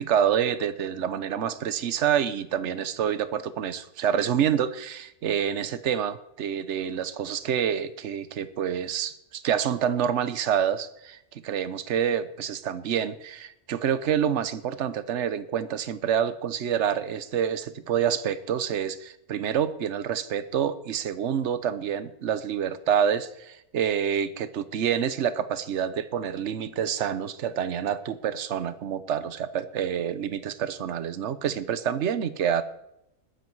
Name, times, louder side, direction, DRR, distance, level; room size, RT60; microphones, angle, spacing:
voice 1, 0.0-32.6, right 8 dB, 60° right, 13 dB, 1.1 m, -27 dB
20.5 x 9.5 x 4.7 m, 0.82 s
omnidirectional pair, 1.4 m